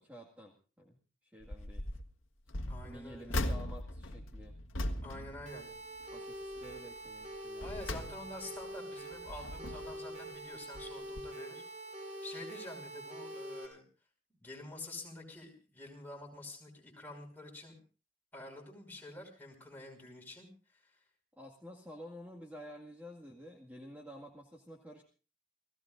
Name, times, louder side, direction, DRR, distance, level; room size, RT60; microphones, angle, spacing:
voice 1, 0.0-1.9 2.8-4.6 6.1-7.7 21.4-25.0, equal, 10° right, 0 dB, 2.0 m, -51 dB
sound 1, 1.4-2.1 2.5-6.2 6.5-6.8 7.3-8.6 9.1-10.1 10.7-10.9 11.2-11.3, left 1 dB, 90° left, 1.7 m, -39 dB
voice 2, 2.7-3.4 5.0-5.7 7.5-11.6 12.2-13.8 14.4-17.8 18.3-21.0, left 2 dB, 10° left, 0 dB, 5.5 m, -48 dB
sound 2, 5.5-13.7, right 1 dB, 35° right, 5.8 m, -45 dB
30.0 x 17.0 x 2.6 m, 0.37 s
head